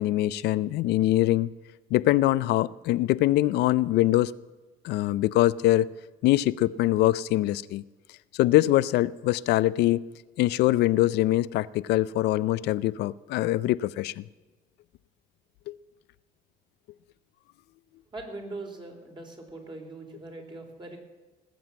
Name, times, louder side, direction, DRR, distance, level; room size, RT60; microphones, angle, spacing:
voice 1, 0.0-1.5 1.9-4.3 4.8-5.9 6.2-7.8 8.3-10.0 10.4-14.2 15.7-15.8, left 15 dB, 80° left, 0.5 m, -23 dB
voice 2, 18.1-21.0, right 2 dB, 25° right, 3.8 m, -41 dB
19.0 x 7.8 x 8.7 m
cardioid pair, 110°, 17 cm